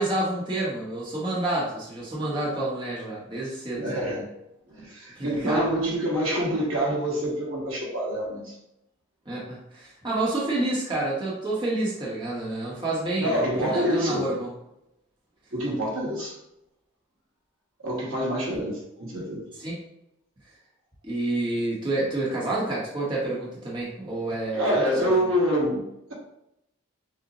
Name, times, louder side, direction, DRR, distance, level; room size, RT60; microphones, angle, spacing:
voice 1, 0.0-3.8 5.1-5.7 9.3-14.5 19.6-19.8 21.0-24.7, right 2 dB, 20° right, -6 dB, 0.9 m, -28 dB
voice 2, 3.8-4.3 4.7-8.5 13.2-14.3 15.5-16.3 17.8-19.5 24.5-26.1, equal, 70° right, -4 dB, 1.4 m, -26 dB
6.3 x 2.1 x 2.9 m, 0.82 s
head